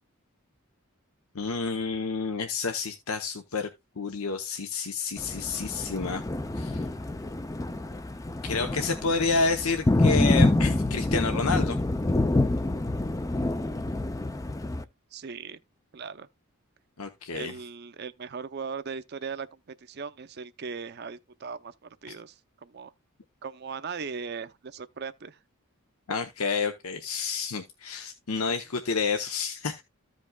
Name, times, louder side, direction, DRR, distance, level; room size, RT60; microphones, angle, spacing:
voice 1, 1.3-3.7 4.0-6.2 6.6-6.8 8.4-11.8 17.0-17.5 22.1-22.2 26.1-29.8, left 4 dB, 85° left, 0.8 m, -29 dB
Thunder, 5.2-14.8, left 2 dB, 15° left, 0.4 m, -27 dB
voice 2, 15.1-15.6 15.9-16.3 17.3-22.3 22.6-22.9 23.4-25.4, right 5 dB, 50° right, 0.6 m, -38 dB
14.5 x 5.2 x 2.3 m
head